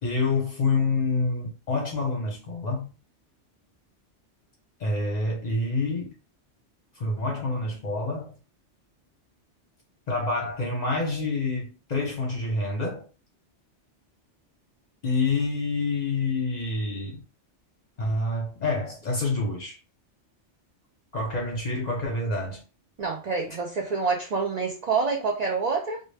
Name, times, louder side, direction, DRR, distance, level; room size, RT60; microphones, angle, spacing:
voice 1, 0.0-2.9 4.8-6.1 7.0-8.3 10.1-13.1 15.0-17.2 18.0-19.8 21.1-22.6, left 3 dB, 45° left, 0.6 m, -27 dB
voice 2, 23.0-26.0, right 4 dB, 65° right, 0.4 m, -27 dB
2.1 x 2.0 x 3.2 m
omnidirectional pair, 1.2 m